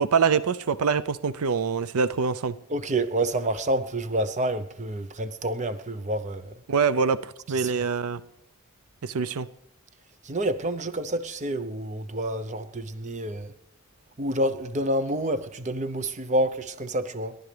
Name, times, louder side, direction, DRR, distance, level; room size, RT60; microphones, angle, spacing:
voice 1, 0.0-2.5 6.7-8.2 9.0-9.5, right 5 dB, 80° right, 0.5 m, -24 dB
voice 2, 2.7-6.5 7.6-7.7 10.2-13.5 14.2-17.4, right 1 dB, 30° right, 0.7 m, -28 dB
29.5 x 11.5 x 3.3 m
head